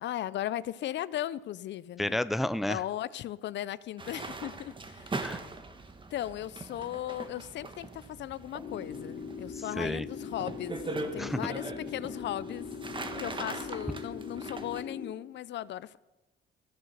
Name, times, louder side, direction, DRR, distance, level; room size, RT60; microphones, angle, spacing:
voice 1, 0.0-2.2 2.7-5.3 6.1-12.7 13.2-16.0, left 12 dB, 65° left, 0.4 m, -37 dB
voice 2, 2.0-2.8 5.2-5.4 9.8-10.0 11.2-11.4, left 1 dB, ahead, 0.3 m, -30 dB
sound 1, 4.0-14.8, right 3 dB, 25° right, 1.2 m, -41 dB
sound 2, 6.9-14.5, right 3 dB, 85° right, 5.1 m, -60 dB
sound 3, 8.6-15.1, left 5 dB, 40° left, 0.9 m, -41 dB
13.5 x 7.6 x 6.6 m
cardioid pair, 90°, 20 cm